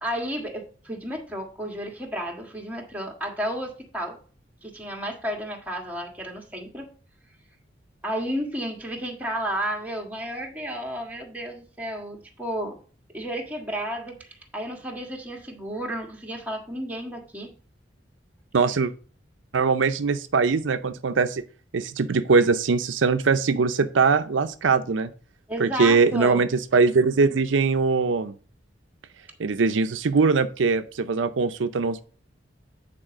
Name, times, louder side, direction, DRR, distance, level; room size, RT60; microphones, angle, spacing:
voice 1, 0.0-4.2 4.6-6.9 8.0-12.8 13.1-14.3 14.5-17.5 25.5-26.4, equal, 10° right, 1 dB, 1.6 m, -32 dB
voice 2, 18.5-18.9 19.5-21.4 21.7-25.1 25.6-28.3 29.4-32.0, right 4 dB, 85° right, 10 dB, 0.5 m, -21 dB
8.9 x 4.3 x 4.9 m, 0.40 s
head